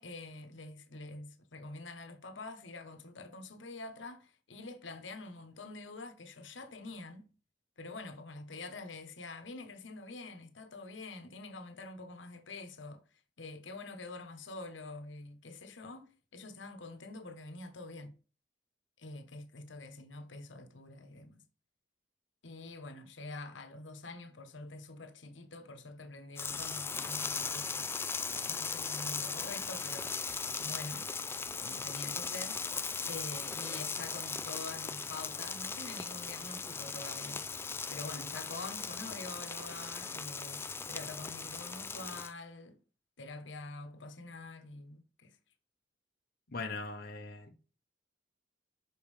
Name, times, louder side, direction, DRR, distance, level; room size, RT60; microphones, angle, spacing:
voice 1, 0.0-7.3 7.8-13.0 13.4-18.1 19.0-21.4 22.4-27.9 28.3-30.1 30.6-31.1 31.6-32.6 33.1-37.5 37.9-42.8 43.2-45.4, left 2 dB, 80° left, 1.1 m, -46 dB
sound 1, 26.4-42.3, left 5 dB, 15° left, 0.3 m, -38 dB
voice 2, 46.5-47.6, left 3 dB, 55° left, 0.8 m, -40 dB
6.1 x 5.4 x 3.2 m
head